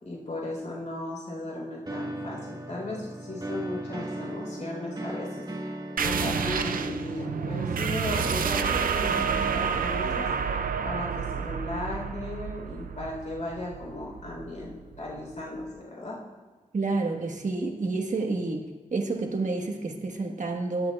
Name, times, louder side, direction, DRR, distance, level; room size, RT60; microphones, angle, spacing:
voice 1, 0.0-5.4 6.0-10.3 10.8-16.2, left 1 dB, 60° left, -3 dB, 3.7 m, -36 dB
sound 1, 1.9-10.1, right 1 dB, 30° right, 1.5 m, -36 dB
sound 2, 6.0-15.2, right 6 dB, 85° right, 0.4 m, -29 dB
voice 2, 16.7-18.6 18.9-20.9, right 3 dB, 60° right, 3 dB, 1.3 m, -29 dB
21.0 x 7.9 x 2.3 m, 1.4 s
cardioid pair, 65°, 14 cm